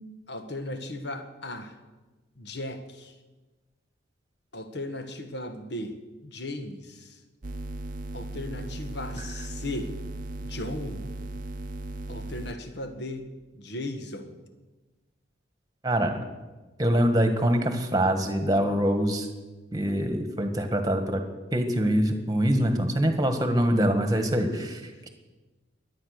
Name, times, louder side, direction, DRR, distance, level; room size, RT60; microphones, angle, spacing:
voice 1, 0.3-1.8 2.4-3.1 4.5-6.0 6.2-7.2 8.1-9.9 10.4-11.0 12.1-13.3 13.5-14.4 24.5-24.6, left 1 dB, 60° left, 7 dB, 1.4 m, -36 dB
sound 1, 7.4-12.5, right 2 dB, 45° right, 0.7 m, -37 dB
voice 2, 15.8-16.2 16.8-19.3 19.7-21.2 21.5-24.8, equal, 20° right, 6 dB, 1.5 m, -24 dB
22.5 x 8.9 x 6.5 m, 1.2 s
head